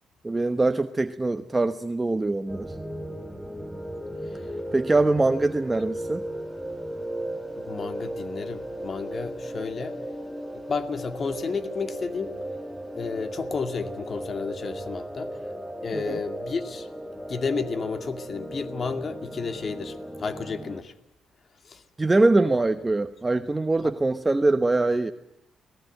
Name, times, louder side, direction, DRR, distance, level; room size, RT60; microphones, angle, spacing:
voice 1, 0.2-2.8 4.7-6.2 15.9-16.2 22.0-25.1, right 2 dB, 20° right, 9 dB, 1.0 m, -23 dB
sound 1, 2.5-20.8, right 1 dB, ahead, 1.8 m, -36 dB
voice 2, 7.6-10.0 10.7-12.4 12.9-15.3 15.8-16.9 17.3-20.9 21.6-21.8, left 5 dB, 45° left, 8 dB, 2.2 m, -32 dB
29.0 x 19.5 x 9.1 m, 0.82 s
cardioid pair, 90°, 0 cm